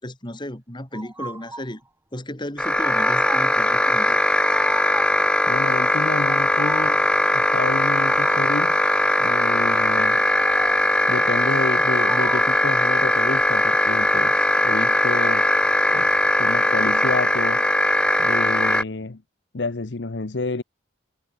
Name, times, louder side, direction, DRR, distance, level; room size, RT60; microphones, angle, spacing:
voice 1, 0.0-1.8 2.1-4.2, left 1 dB, 25° left, 3.1 m, -34 dB
sound 1, 0.9-1.8 2.7-3.6 4.4-5.3 6.2-7.0 7.9-8.6 10.2-11.0 11.9-12.7, right 2 dB, 10° right, 3.2 m, -36 dB
sound 2, 2.6-18.8, left 1 dB, 5° left, 0.6 m, -20 dB
voice 2, 5.5-7.0 7.3-8.8 9.2-10.2 11.1-15.5 15.9-16.1 16.4-17.7 18.2-19.2 19.5-20.6, left 3 dB, 65° left, 0.9 m, -29 dB
head